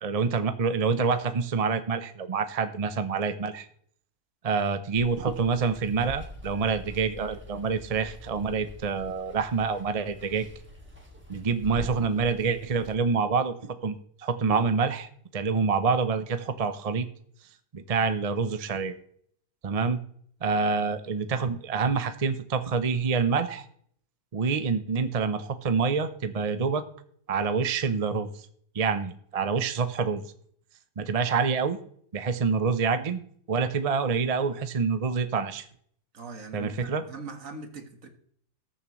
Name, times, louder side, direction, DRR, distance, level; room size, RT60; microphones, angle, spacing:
voice 1, 0.0-3.7 4.4-10.5 11.3-13.5 13.8-17.1 17.7-18.9 19.6-20.0 20.4-23.7 24.3-26.8 27.3-28.3 28.7-30.2 31.0-31.8 32.1-33.2 33.5-35.7 36.5-37.0, right 5 dB, 40° right, 10 dB, 0.5 m, -27 dB
Water, 5.0-12.9, equal, 5° right, 2.0 m, -45 dB
voice 2, 36.1-38.1, right 4 dB, 60° right, 6 dB, 1.9 m, -41 dB
19.5 x 7.0 x 3.1 m, 0.62 s
omnidirectional pair, 1.6 m